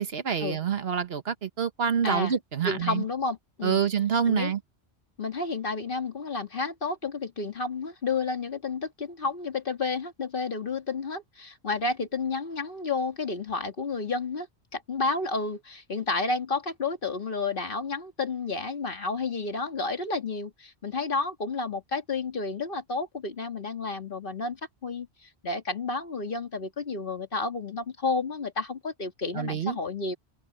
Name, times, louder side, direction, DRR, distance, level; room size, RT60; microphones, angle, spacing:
voice 1, 0.0-3.0 3.6-4.6 29.3-29.8, right 7 dB, 65° right, 1.3 m, -27 dB
voice 2, 2.0-2.3 2.6-3.8 4.3-4.5 5.2-14.5 14.7-30.1, left 4 dB, 50° left, 2.0 m, -31 dB
omnidirectional pair, 1.1 m